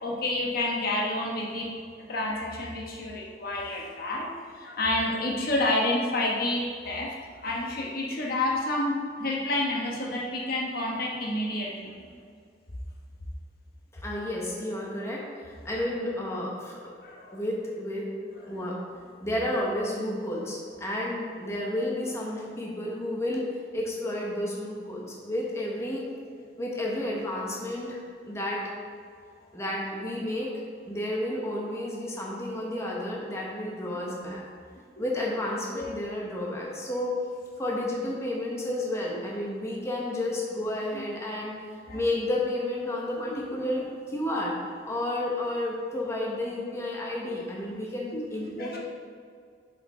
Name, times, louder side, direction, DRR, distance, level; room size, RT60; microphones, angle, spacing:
voice 1, 0.0-1.7 2.0-4.3 4.5-7.1 7.4-12.1 17.0-17.4 18.5-18.6 35.0-35.1 35.7-35.9 40.9-41.0 41.9-42.0 43.3-43.6 48.1-48.8, left 2 dB, 60° left, -2 dB, 1.2 m, -29 dB
voice 2, 13.9-16.8 17.3-18.1 18.5-18.8 19.2-23.5 23.7-26.0 26.6-28.6 29.5-30.5 30.8-34.4 35.0-37.1 37.6-41.6 41.9-44.5 44.8-48.8, left 1 dB, 15° left, -3 dB, 1.0 m, -31 dB
7.4 x 5.1 x 4.2 m, 2.1 s
head